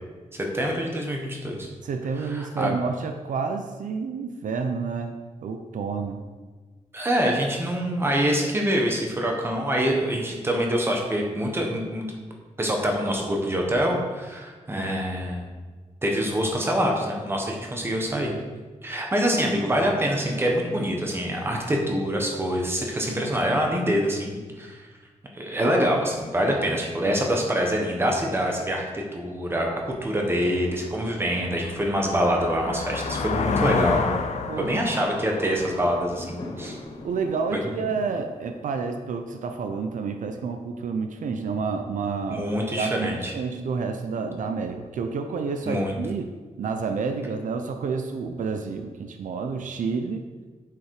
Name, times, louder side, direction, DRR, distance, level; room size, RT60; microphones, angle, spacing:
voice 1, 0.3-1.7 2.2-2.7 6.9-12.1 12.6-15.5 16.0-18.3 18.8-24.8 25.3-34.1 34.6-36.8 37.5-37.8 42.3-43.3 45.7-45.9, equal, 20° right, 1 dB, 1.4 m, -25 dB
voice 2, 1.8-6.2 25.6-26.0 34.5-34.7 37.0-42.5 42.8-46.3 46.6-50.3, right 5 dB, 75° right, 6 dB, 0.7 m, -29 dB
sound 1, 29.9-30.0 30.5-37.1, left 4 dB, 60° left, 0.7 m, -30 dB
Fireworks, 35.7-40.2, left 2 dB, 35° left, 1.2 m, -43 dB
8.2 x 6.9 x 4.9 m, 1.3 s
wide cardioid pair, 165°, 13 cm